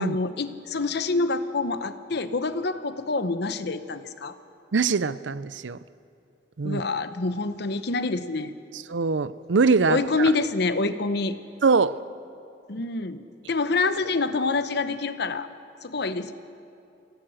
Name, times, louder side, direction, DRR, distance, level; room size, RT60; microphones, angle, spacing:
voice 1, 0.0-4.3 6.6-8.5 9.9-11.4 12.7-15.5 15.8-16.3, left 3 dB, 65° left, 11 dB, 1.0 m, -26 dB
voice 2, 4.7-5.8 6.6-6.8 8.9-10.3 11.6-12.0, right 4 dB, 85° right, 16 dB, 0.6 m, -23 dB
25.0 x 16.5 x 6.4 m, 2.6 s
head